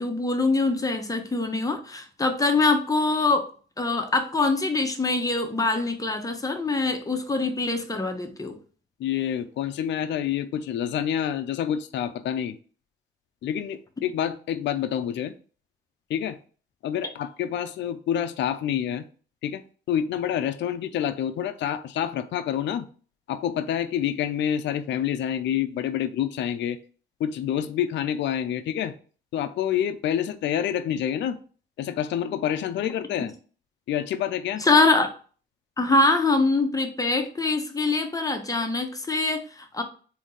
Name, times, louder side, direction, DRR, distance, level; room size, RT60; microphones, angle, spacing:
voice 1, 0.0-3.5 3.8-8.5 34.6-35.1 35.8-39.8, left 3 dB, 15° left, 0.8 m, -24 dB
voice 2, 9.0-12.6 13.4-15.3 16.1-16.4 16.8-19.1 19.4-19.6 19.9-22.9 23.3-26.8 27.2-28.9 29.3-31.4 31.8-33.3 33.9-34.6, left 10 dB, 65° left, 0.4 m, -27 dB
3.6 x 2.7 x 3.8 m
cardioid pair, 90°, 20 cm